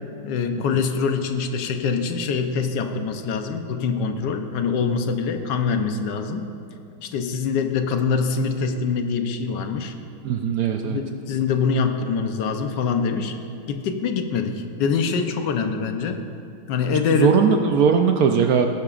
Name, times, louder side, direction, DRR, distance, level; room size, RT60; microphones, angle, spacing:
voice 1, 0.2-6.5 7.0-9.9 10.8-13.3 13.7-16.2 16.7-17.6, left 5 dB, 75° left, 6 dB, 1.4 m, -24 dB
voice 2, 10.2-11.0 17.1-18.7, right 7 dB, 70° right, 5 dB, 0.9 m, -19 dB
18.5 x 11.0 x 2.4 m, 2.5 s
omnidirectional pair, 2.0 m